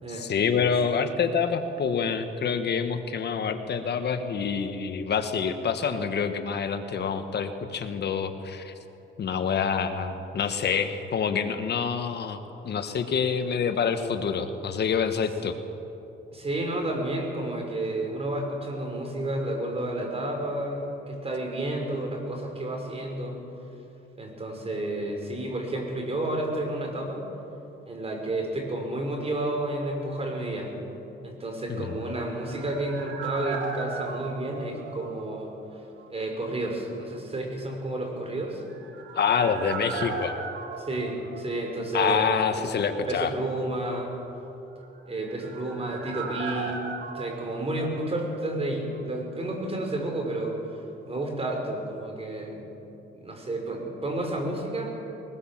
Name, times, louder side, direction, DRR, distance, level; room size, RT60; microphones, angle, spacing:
voice 1, 0.1-8.7 9.2-15.6 31.7-31.9 39.1-40.4 41.9-43.3, left 6 dB, 55° left, 8 dB, 1.5 m, -27 dB
voice 2, 16.3-23.4 24.2-27.2 27.9-30.7 31.2-35.5 36.1-38.6 40.8-42.7 43.1-44.1 45.1-46.9 47.1-50.6 51.1-52.6 53.1-54.9, right 1 dB, 30° right, 2 dB, 5.6 m, -31 dB
sound 1, 31.9-35.7 36.0-36.1 38.5-42.2 42.5-42.6 44.8-48.7 48.9-49.0, right 4 dB, 75° right, 2.7 m, -38 dB
22.5 x 20.0 x 7.5 m, 2.9 s
cardioid pair, 90°, 20 cm